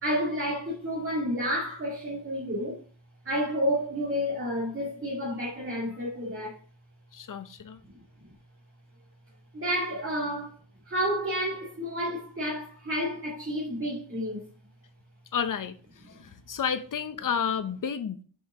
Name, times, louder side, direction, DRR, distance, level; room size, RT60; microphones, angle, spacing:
voice 1, 0.0-2.8 3.2-6.6 9.5-10.6 10.9-14.5, equal, 25° right, 2.0 m, -30 dB
voice 2, 7.1-7.8 15.3-15.8 16.1-18.2, left 7 dB, 45° left, 0.8 m, -31 dB
6.0 x 5.7 x 3.6 m
wide cardioid pair, 125°, 45 cm